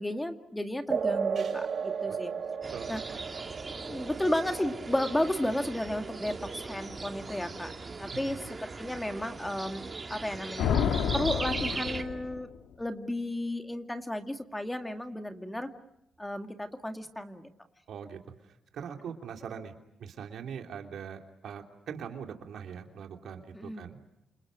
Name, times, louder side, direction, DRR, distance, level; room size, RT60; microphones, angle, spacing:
voice 1, 0.0-2.3 2.9-3.0 3.9-7.7 8.0-9.8 10.1-10.7 11.1-12.5 12.8-15.7 16.2-17.5 23.5-23.8, left 1 dB, 10° left, 6 dB, 2.2 m, -33 dB
sound 1, 0.9-7.9, right 6 dB, 55° right, 2.7 m, -36 dB
sound 2, 2.6-12.0, right 3 dB, 30° right, 2.3 m, -39 dB
voice 2, 2.7-3.2 8.1-8.4 17.9-18.2 18.7-19.7 20.0-24.0, right 7 dB, 75° right, 4 dB, 3.1 m, -42 dB
sound 3, 10.6-12.6, left 7 dB, 85° left, 1.8 m, -29 dB
30.0 x 28.0 x 6.4 m, 0.82 s
cardioid pair, 80°, 0 cm